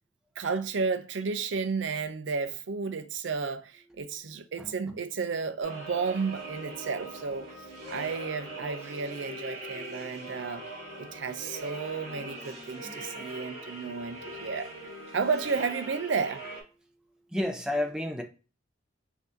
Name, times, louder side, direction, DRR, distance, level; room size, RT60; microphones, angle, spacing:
voice 1, 0.4-7.5 7.9-10.6 11.0-14.7 15.1-16.4, right 5 dB, 70° right, 0.5 m, -32 dB
voice 2, 4.6-5.0 12.0-13.3 17.3-18.2, left 1 dB, 5° right, 0.6 m, -34 dB
sound 1, 5.6-16.6, right 1 dB, 35° right, 1.7 m, -41 dB
5.8 x 2.7 x 2.5 m
head